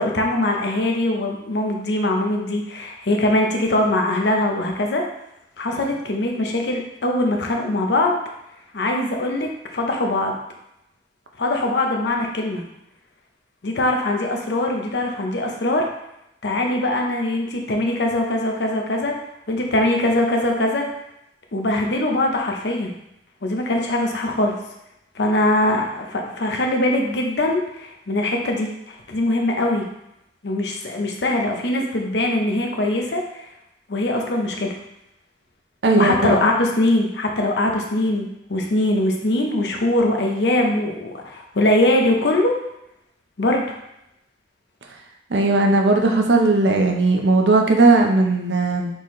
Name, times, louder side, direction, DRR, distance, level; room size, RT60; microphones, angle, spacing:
voice 1, 0.0-5.0 5.6-8.1 8.7-10.4 11.4-12.6 13.6-15.9 16.4-19.1 19.5-20.8 21.5-22.9 23.4-24.5 25.1-28.7 29.1-29.8 30.4-33.4 33.9-34.8 35.9-42.5 43.4-43.8, left 1 dB, 70° left, 1 dB, 0.7 m, -22 dB
voice 2, 35.8-36.4 45.3-48.9, right 3 dB, 80° right, 2 dB, 0.6 m, -17 dB
4.4 x 3.8 x 3.1 m, 0.83 s
head